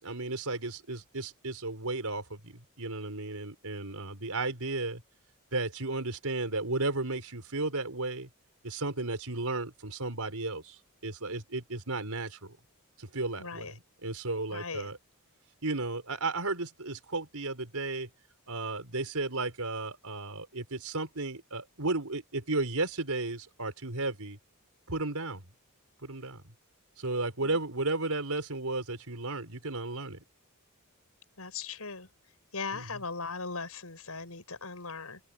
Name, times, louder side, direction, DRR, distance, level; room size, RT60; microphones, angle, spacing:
voice 1, 0.0-2.5 2.8-5.0 5.5-8.3 8.6-10.7 11.0-12.5 13.0-15.0 15.6-18.1 18.5-24.4 24.9-25.4 26.0-26.4 27.0-30.2 32.7-32.8, right 2 dB, 75° right, 5.1 m, -34 dB
voice 2, 13.4-13.7 14.5-14.9 27.4-27.6 31.4-32.1 32.5-35.2, left 4 dB, 80° left, 6.9 m, -39 dB
open air
head